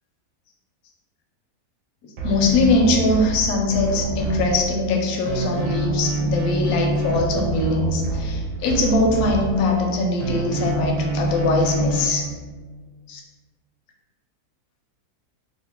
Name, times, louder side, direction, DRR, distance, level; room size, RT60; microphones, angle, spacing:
voice 1, 2.2-12.2 13.1-13.2, left 2 dB, 75° left, 0 dB, 1.0 m, -21 dB
sound 1, 2.2-5.0 5.3-9.9 10.2-12.1, right 2 dB, 75° right, 1.1 m, -26 dB
2.9 x 2.4 x 3.6 m, 1.4 s
omnidirectional pair, 1.7 m